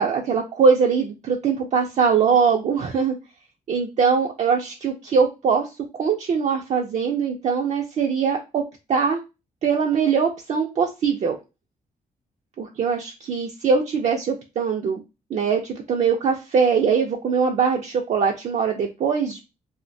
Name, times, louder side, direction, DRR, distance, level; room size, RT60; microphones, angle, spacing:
voice 1, 0.0-3.2 3.7-5.7 5.9-8.6 8.9-9.2 9.6-11.4 12.8-15.0 15.3-19.4, right 6 dB, 50° right, 2 dB, 0.4 m, -22 dB
2.5 x 2.1 x 2.6 m, 0.26 s
cardioid pair, 115°, 15 cm